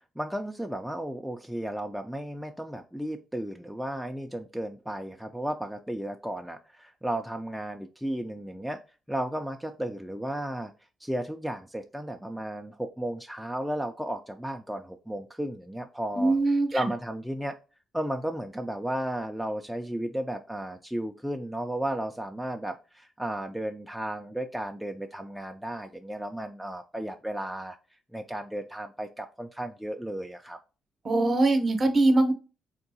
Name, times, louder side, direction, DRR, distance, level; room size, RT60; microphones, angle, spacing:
voice 1, 0.2-8.8 9.1-10.7 11.0-16.4 16.7-17.6 17.9-27.8 28.1-30.6, right 1 dB, ahead, 4 dB, 0.3 m, -34 dB
voice 2, 16.1-16.9 31.0-32.3, right 2 dB, 40° right, 7 dB, 0.7 m, -22 dB
3.6 x 2.3 x 2.6 m, 0.32 s
cardioid pair, 90°, 0 cm